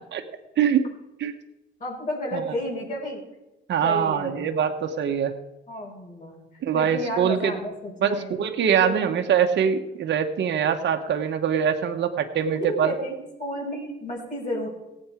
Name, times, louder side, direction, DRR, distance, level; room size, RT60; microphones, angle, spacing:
voice 1, 0.6-0.9 1.2-1.3 2.3-2.4 3.7-5.3 6.6-7.6 8.0-12.9, right 8 dB, 65° right, 5 dB, 1.3 m, -23 dB
voice 2, 1.8-3.2 3.8-4.4 5.7-6.4 6.7-8.3 8.8-9.2 12.5-13.1 13.4-14.7, equal, 40° left, -3 dB, 5.2 m, -31 dB
17.0 x 8.8 x 5.1 m, 0.98 s
cardioid pair, 90°, 20 cm